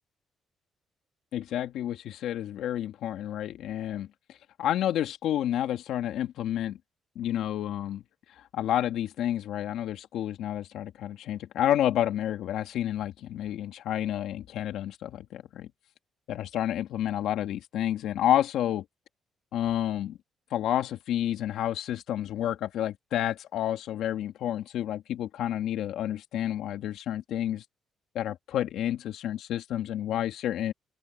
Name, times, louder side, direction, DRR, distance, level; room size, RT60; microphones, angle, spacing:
voice 1, 1.3-6.8 7.2-8.0 8.5-15.7 16.3-18.8 19.5-20.2 20.5-27.6 28.1-30.7, left 11 dB, 80° left, 2.4 m, -30 dB
open air
cardioid pair, 90°, 0 cm